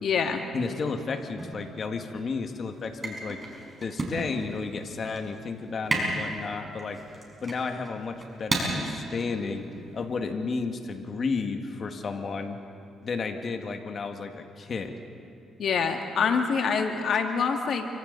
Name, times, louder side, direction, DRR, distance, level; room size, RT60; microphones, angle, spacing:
voice 1, 0.0-0.4 15.6-17.8, left 6 dB, 65° left, 4 dB, 2.1 m, -25 dB
voice 2, 0.5-3.4 3.8-7.0 7.4-9.7 9.9-12.6 13.0-15.0, left 4 dB, 45° left, 5 dB, 1.8 m, -32 dB
sound 1, 1.4-10.2, right 2 dB, 30° right, 5.5 m, -34 dB
28.5 x 25.0 x 4.1 m, 2.8 s
cardioid pair, 90°, 0 cm